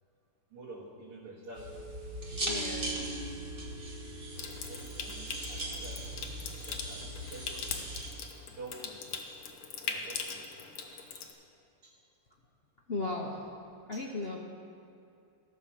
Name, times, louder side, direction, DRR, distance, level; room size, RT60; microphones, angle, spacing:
voice 1, 0.5-1.8 2.3-2.4 3.6-3.7 4.7-8.2 8.4-9.0 9.3-10.5 10.9-11.3 11.8-12.0 13.9-14.0, right 2 dB, 90° right, -10 dB, 2.7 m, -49 dB
sound 1, 1.6-8.1, right 1 dB, 30° right, 1.5 m, -39 dB
voice 2, 2.3-3.1 12.9-13.4 13.9-14.4, left 2 dB, 60° left, -2 dB, 0.6 m, -36 dB
Water tap faucet / Sink (filling or washing) / Trickle dribble, 4.4-11.3, left 6 dB, 80° left, 1.9 m, -41 dB
15.0 x 6.3 x 7.3 m, 2.5 s
omnidirectional pair, 2.4 m